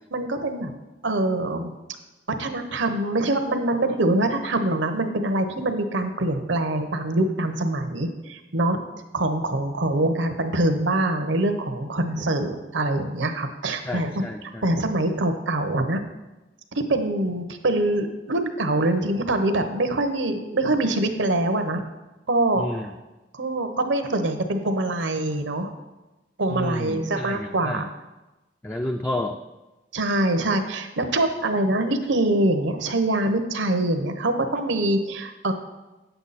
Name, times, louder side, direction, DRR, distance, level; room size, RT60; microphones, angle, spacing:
voice 1, 0.1-0.7 1.0-1.7 2.4-8.8 9.1-14.2 14.6-16.0 16.7-21.8 22.3-22.9 23.3-25.7 26.4-27.9 29.9-35.5, right 1 dB, 75° right, 7 dB, 1.0 m, -24 dB
voice 2, 13.8-14.7 22.6-22.9 26.5-27.9 28.6-29.4, left 1 dB, 10° left, 3 dB, 0.4 m, -30 dB
9.3 x 8.1 x 4.2 m, 1.1 s
head